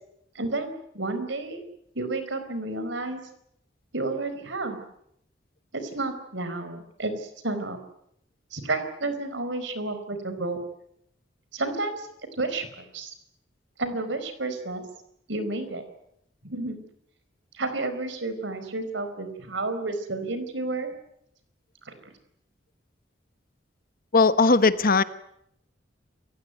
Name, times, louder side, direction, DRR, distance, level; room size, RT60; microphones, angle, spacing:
voice 1, 0.3-1.6 1.9-3.2 3.9-4.8 5.7-7.8 8.5-10.6 11.5-12.1 12.4-13.1 13.8-14.8 15.3-15.8 16.4-16.8 17.5-20.9 21.8-21.9, right 2 dB, 70° right, 10 dB, 4.6 m, -31 dB
voice 2, 24.1-25.0, left 4 dB, 50° left, 13 dB, 1.1 m, -18 dB
28.5 x 16.0 x 9.4 m, 0.76 s
head